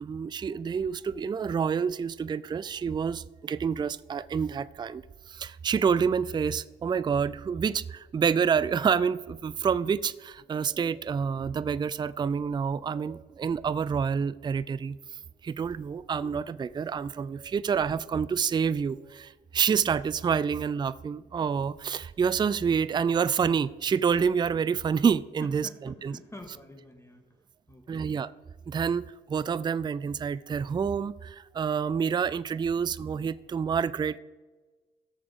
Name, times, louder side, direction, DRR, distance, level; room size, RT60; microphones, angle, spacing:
voice 1, 0.0-5.0 5.4-15.0 15.4-19.3 19.5-25.7 26.0-26.2 27.9-28.3 28.7-31.3 31.6-34.2, right 6 dB, 20° right, 0.3 m, -28 dB
voice 2, 25.4-28.1, left 1 dB, 15° left, 1.9 m, -48 dB
17.0 x 6.8 x 3.7 m
cardioid pair, 90°, 20 cm